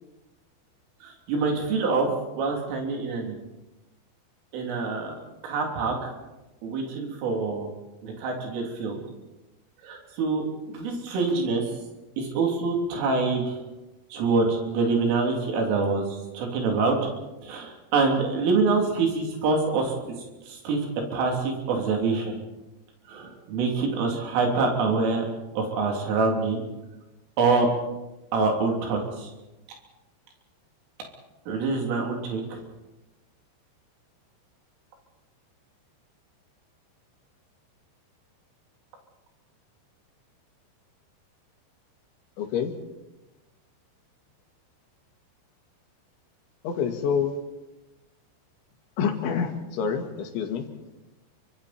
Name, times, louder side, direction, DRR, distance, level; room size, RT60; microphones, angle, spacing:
voice 1, 1.0-2.1 2.4-3.4 4.5-5.2 5.4-6.1 6.6-7.7 8.0-9.0 9.8-11.6 12.2-13.6 14.1-16.0 16.3-17.0 17.4-19.9 20.5-22.3 23.1-25.2 25.6-26.6 27.4-27.7 28.3-29.3 31.5-32.6, right 4 dB, 90° right, 1 dB, 5.8 m, -25 dB
voice 2, 42.4-42.7 46.6-47.4 49.0-50.7, left 6 dB, 75° left, 5 dB, 4.3 m, -27 dB
29.5 x 25.0 x 4.4 m, 1.0 s
omnidirectional pair, 5.6 m